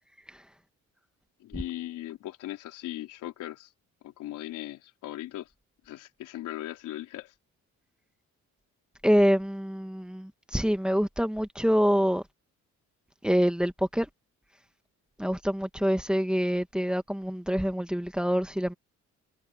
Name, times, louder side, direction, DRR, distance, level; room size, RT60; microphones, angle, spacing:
voice 1, 1.4-3.7 4.0-5.5 5.8-7.3, left 14 dB, 90° left, 4.3 m, -38 dB
voice 2, 9.0-12.2 13.2-14.1 15.2-18.7, equal, 5° right, 1.9 m, -26 dB
cardioid pair, 90°, 30 cm